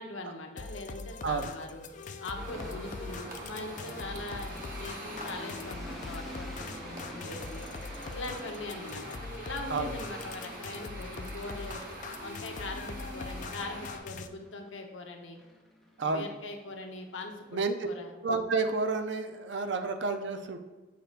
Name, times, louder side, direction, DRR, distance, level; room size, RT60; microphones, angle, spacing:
voice 1, 0.0-1.9 2.2-7.6 8.1-11.8 12.2-15.4 16.0-18.1, left 2 dB, 75° left, 3 dB, 1.0 m, -41 dB
sound 1, 0.6-14.3, left 4 dB, 40° left, 0.4 m, -42 dB
sound 2, 1.6-9.2 10.1-10.9 14.1-14.9 15.3-17.7, equal, ahead, 0.8 m, -51 dB
sound 3, 2.3-14.0, right 1 dB, 45° right, 1.2 m, -44 dB
voice 2, 18.2-20.6, right 4 dB, 65° right, 7 dB, 0.6 m, -30 dB
6.7 x 6.6 x 2.5 m, 1.3 s
head